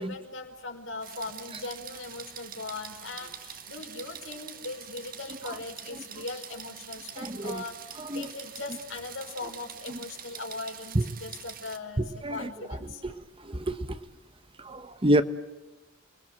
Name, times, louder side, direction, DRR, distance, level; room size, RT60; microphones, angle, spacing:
voice 1, 0.0-13.0, left 3 dB, 70° left, 5.4 m, -39 dB
sound 1, 1.0-11.8, right 9 dB, 45° right, 1.7 m, -45 dB
voice 2, 7.2-7.6 8.0-8.3 9.9-10.0 10.9-11.1 12.0-14.0 14.6-15.2, right 1 dB, 25° right, 1.1 m, -29 dB
29.0 x 21.0 x 7.9 m
head